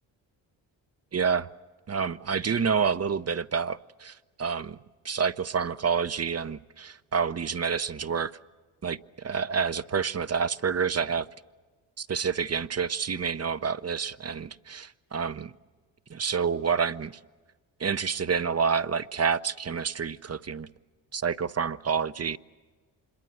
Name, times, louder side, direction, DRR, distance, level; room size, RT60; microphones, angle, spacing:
voice 1, 1.1-1.5 1.9-4.8 5.0-8.3 8.8-11.3 12.0-15.5 16.1-17.1 17.8-20.7 21.1-22.4, right 6 dB, 30° right, 0.7 m, -28 dB
26.0 x 22.0 x 7.8 m
supercardioid pair, 55°, 49 cm